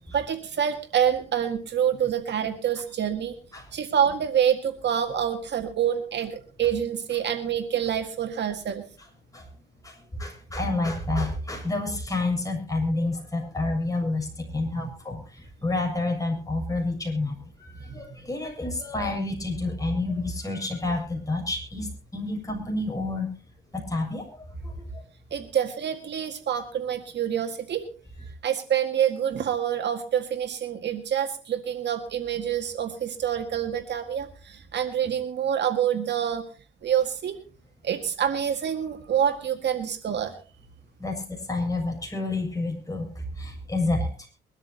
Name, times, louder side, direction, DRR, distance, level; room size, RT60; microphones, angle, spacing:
voice 1, 0.1-3.4 3.7-8.8 14.8-14.9 18.1-18.2 25.3-27.8 28.4-36.4 36.8-37.4 37.8-40.3, right 9 dB, 60° right, 7 dB, 1.9 m, -27 dB
voice 2, 9.8-14.3 14.5-17.4 17.8-21.9 22.1-23.3 23.7-24.2 24.6-24.8 41.0-41.2 41.5-44.3, left 2 dB, 15° left, 2 dB, 6.9 m, -29 dB
23.0 x 12.5 x 2.9 m, 0.37 s
cardioid pair, 90°, 20 cm